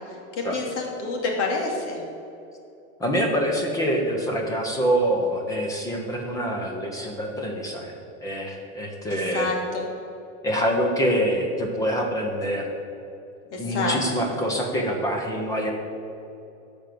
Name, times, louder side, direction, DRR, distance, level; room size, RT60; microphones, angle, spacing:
voice 1, 0.3-2.0 9.1-9.8 13.5-14.3, left 3 dB, 75° left, 0 dB, 2.5 m, -28 dB
voice 2, 3.0-7.9 8.2-9.5 10.4-12.7 13.6-15.7, equal, 10° left, 2 dB, 0.9 m, -25 dB
13.5 x 5.2 x 6.8 m, 2.8 s
supercardioid pair, 175°, 35 cm